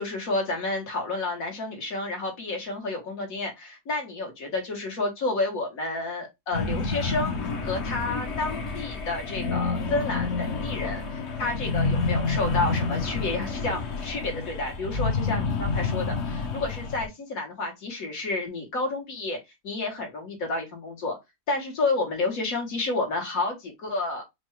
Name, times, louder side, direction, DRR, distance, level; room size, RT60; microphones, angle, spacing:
voice 1, 0.0-19.4 19.6-21.2 21.5-24.2, left 3 dB, 70° left, 1.8 m, -30 dB
sound 1, 6.5-17.1, left 4 dB, 50° left, 1.1 m, -29 dB
5.1 x 2.2 x 3.1 m
omnidirectional pair, 1.5 m